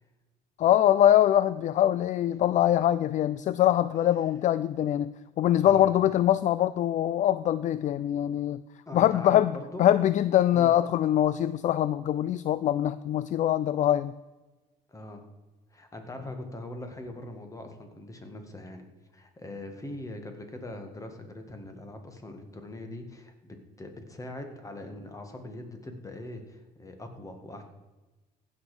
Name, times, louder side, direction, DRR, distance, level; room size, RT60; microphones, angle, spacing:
voice 1, 0.6-8.6 8.9-9.5 9.8-14.1, left 11 dB, 45° left, 16 dB, 0.4 m, -23 dB
voice 2, 5.6-5.9 8.9-9.9 10.5-10.7 14.9-15.2 15.7-18.9 19.1-27.6, left 1 dB, 20° left, 6 dB, 1.9 m, -41 dB
15.5 x 6.6 x 5.0 m, 1.2 s
cardioid pair, 110°, 17 cm